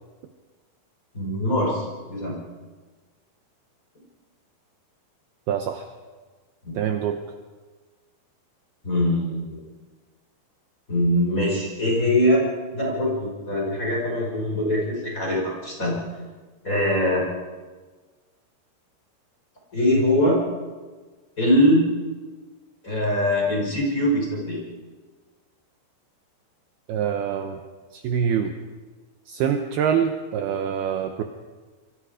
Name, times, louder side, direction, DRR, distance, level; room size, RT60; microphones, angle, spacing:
voice 1, 1.1-2.4 6.6-6.7 8.8-9.6 10.9-12.4 12.7-16.0 16.6-17.2 19.7-20.4 21.4-21.9 22.8-24.6, left 1 dB, 20° left, -2 dB, 5.2 m, -22 dB
voice 2, 5.5-5.9 6.7-7.2 26.9-27.6 27.9-28.6 29.3-31.2, right 8 dB, 70° right, 5 dB, 2.7 m, -25 dB
28.0 x 22.5 x 5.0 m, 1.4 s
omnidirectional pair, 5.1 m